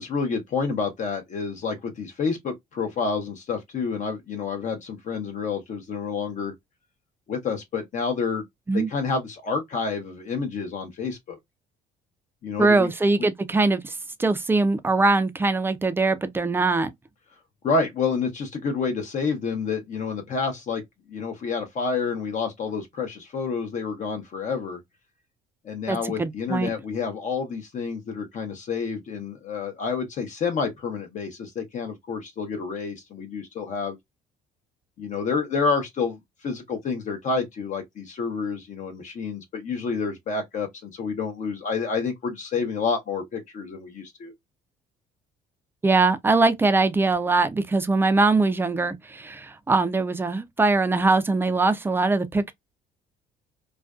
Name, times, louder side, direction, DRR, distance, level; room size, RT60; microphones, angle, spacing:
voice 1, 0.0-6.5 7.3-8.4 8.7-11.4 12.4-12.9 17.6-20.8 21.1-24.8 25.6-34.0 35.0-44.3, left 5 dB, 45° left, 0.7 m, -29 dB
voice 2, 12.6-13.9 14.2-16.9 25.9-26.7 45.8-52.5, right 3 dB, 15° right, 0.4 m, -22 dB
2.5 x 2.2 x 2.2 m
cardioid pair, 110°, 17 cm